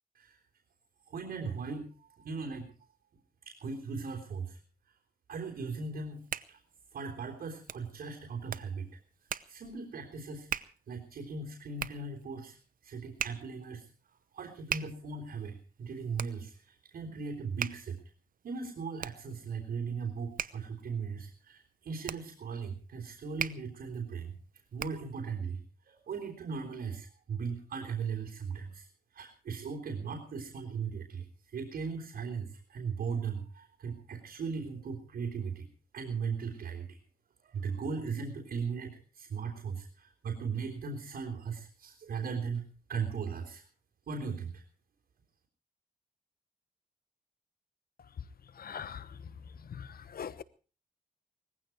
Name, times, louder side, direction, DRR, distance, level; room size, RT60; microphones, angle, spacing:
voice 1, 1.1-2.7 3.5-4.6 5.3-6.6 6.9-8.9 9.5-10.5 10.9-12.6 12.8-13.8 14.3-18.0 18.4-24.3 24.7-25.6 25.9-28.9 29.1-35.7 35.9-37.0 37.4-42.6 42.9-43.6 44.1-44.6, right 5 dB, 90° right, 3.6 m, -38 dB
Hands, 5.9-25.2, right 7 dB, 60° right, 0.8 m, -42 dB
voice 2, 48.5-49.3 49.6-50.4, left 7 dB, 75° left, 1.1 m, -42 dB
19.5 x 15.5 x 4.6 m
cardioid pair, 70°, 16 cm